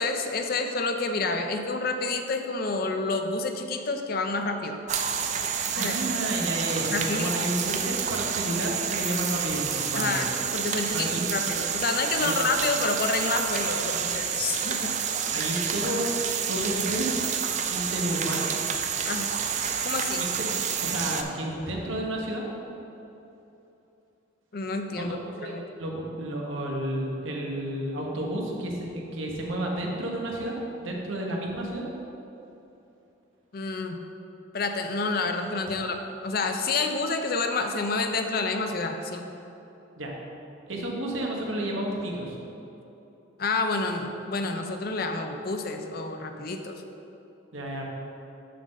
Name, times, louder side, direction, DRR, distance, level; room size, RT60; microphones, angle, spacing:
voice 1, 0.0-4.8 5.7-6.0 6.9-7.3 9.9-15.0 19.0-19.3 19.8-20.3 24.5-25.2 25.4-25.6 33.5-34.0 34.5-39.3 43.4-46.8, left 3 dB, 50° left, 5 dB, 0.5 m, -29 dB
sound 1, 4.9-21.2, right 7 dB, 35° right, 0.4 m, -29 dB
voice 2, 5.7-10.4 10.9-11.3 12.2-12.3 15.3-16.0 16.5-17.2 17.7-18.5 20.2-20.3 20.8-22.4 25.0-25.1 25.4-31.9 40.0-40.1 40.7-42.4 47.5-47.8, right 1 dB, 80° right, -1 dB, 1.2 m, -31 dB
6.7 x 3.9 x 6.4 m, 2.9 s
head